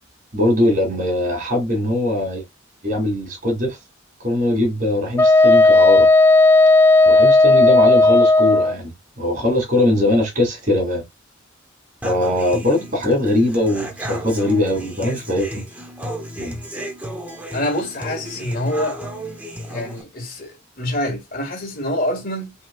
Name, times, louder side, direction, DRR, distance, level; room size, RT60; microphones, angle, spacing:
voice 1, 0.3-2.4 2.8-3.8 4.2-6.1 7.0-8.9 9.2-11.1 12.0-15.6 16.4-16.6, left 1 dB, 40° right, 2.6 m, -20 dB
Wind instrument woodwind instrument, 5.2-8.7, left 2 dB, 10° left, 0.3 m, -12 dB
Human voice / Acoustic guitar, 12.0-20.0, equal, 10° right, 0.8 m, -33 dB
voice 2, 17.5-19.0 19.7-22.5, left 1 dB, 45° left, 1.7 m, -26 dB
5.4 x 3.6 x 2.3 m
head